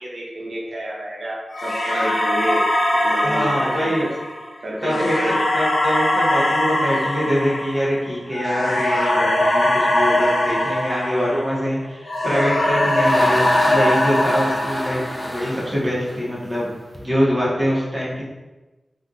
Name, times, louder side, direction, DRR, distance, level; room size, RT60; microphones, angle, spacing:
voice 1, 0.0-2.6 2.9-4.1 4.6-5.4, right 1 dB, 70° right, -4 dB, 0.6 m, -29 dB
sound 1, 1.5-11.7 12.0-15.5, left 1 dB, 80° left, 0.7 m, -21 dB
voice 2, 3.2-4.1 4.8-15.0 15.3-18.2, equal, 10° right, -7 dB, 1.4 m, -24 dB
sound 2, 12.4-17.0, equal, 5° left, 0.6 m, -30 dB
3.4 x 2.4 x 2.7 m, 1.1 s
cardioid pair, 50°, 0 cm